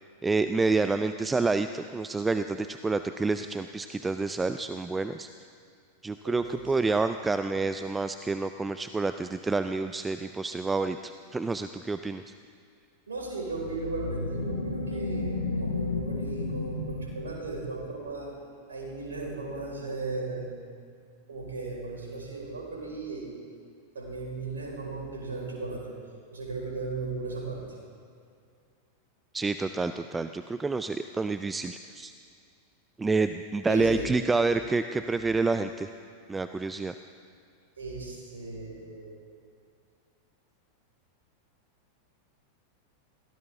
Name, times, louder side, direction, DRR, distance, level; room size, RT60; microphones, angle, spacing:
voice 1, 0.2-5.3 6.0-12.3 29.3-32.1 33.0-35.9 36.3-36.9, right 3 dB, 10° right, 10 dB, 0.4 m, -28 dB
voice 2, 6.2-6.6 13.1-18.3 18.7-20.4 21.3-23.3 23.9-25.9 26.3-27.6 33.7-34.0 37.8-39.2, right 3 dB, 70° right, -2 dB, 5.1 m, -36 dB
sound 1, 13.5-17.9, left 3 dB, 80° left, 1.3 m, -33 dB
22.5 x 17.5 x 3.7 m, 2.3 s
figure-of-eight pair, 90°, 0 cm